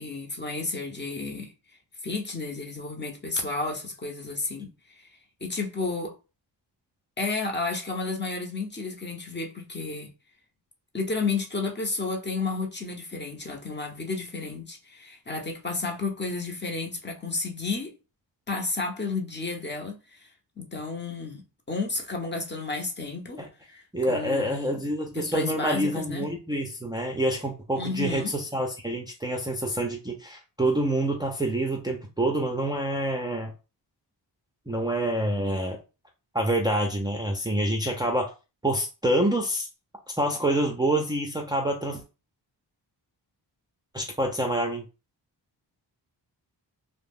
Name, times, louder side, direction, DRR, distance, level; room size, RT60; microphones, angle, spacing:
voice 1, 0.0-1.5 2.0-5.1 5.4-6.2 7.2-10.1 10.9-17.9 18.5-20.3 20.6-23.4 24.0-24.8 25.1-26.3 27.8-28.3, left 3 dB, 25° left, 0.7 m, -32 dB
voice 2, 23.9-33.5 34.7-35.8 36.3-38.3 38.6-39.7 40.1-42.0 43.9-44.8, right 1 dB, 10° right, 0.5 m, -27 dB
2.3 x 2.1 x 3.4 m
cardioid pair, 60°, 45 cm